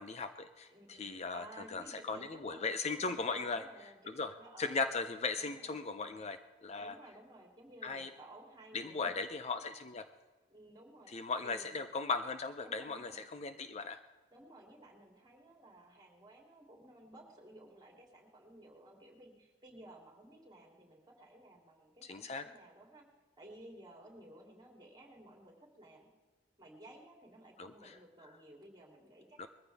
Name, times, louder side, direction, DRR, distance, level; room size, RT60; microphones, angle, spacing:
voice 1, 0.0-3.6 4.1-7.0 7.8-8.1 8.7-10.1 11.1-14.0 22.0-22.4 27.6-27.9 29.4-29.5, left 4 dB, 35° left, 9 dB, 0.5 m, -38 dB
voice 2, 0.7-4.8 5.4-6.3 6.8-9.1 10.5-11.1 11.4-11.8 12.6-13.2 14.3-23.0 23.4-26.1 26.6-29.5, right 1 dB, 20° right, 0 dB, 3.0 m, -56 dB
21.0 x 14.5 x 3.5 m, 1.3 s
head